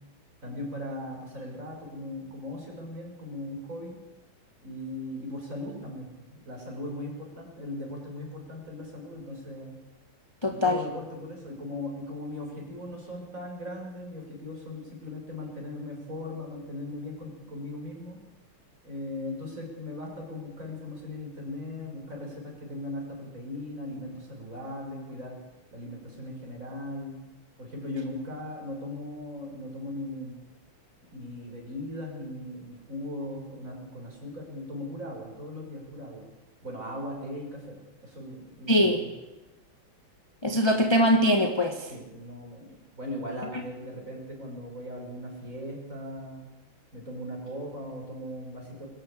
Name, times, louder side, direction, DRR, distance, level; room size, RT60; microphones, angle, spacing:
voice 1, 0.4-4.0 4.6-9.8 10.4-18.2 18.8-25.4 25.7-27.2 27.6-30.4 31.1-36.3 36.6-39.1 41.9-46.5 46.9-48.9, left 1 dB, 40° right, -1 dB, 6.4 m, -38 dB
voice 2, 10.4-10.8 38.7-39.0 40.4-41.9, equal, 15° left, 3 dB, 1.4 m, -22 dB
23.0 x 13.5 x 8.6 m, 1.1 s
omnidirectional pair, 2.3 m